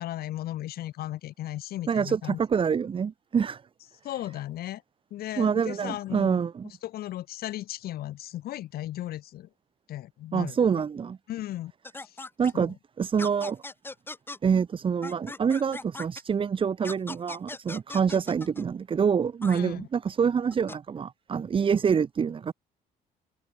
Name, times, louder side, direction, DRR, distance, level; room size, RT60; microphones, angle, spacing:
voice 1, 0.0-2.4 4.0-4.8 5.1-9.5 9.9-10.6 11.3-11.7 12.0-12.2 12.5-12.7 19.5-19.9, left 14 dB, 65° left, 1.1 m, -36 dB
voice 2, 1.9-3.6 5.4-6.7 10.3-11.2 12.4-13.6 14.4-22.5, right 6 dB, 30° right, 0.9 m, -26 dB
sound 1, 11.8-12.5 13.2-14.4 15.0-16.2 16.8-18.7 19.4-19.6 20.5-20.8, left 2 dB, 10° left, 1.2 m, -39 dB
open air
cardioid pair, 110°, 17 cm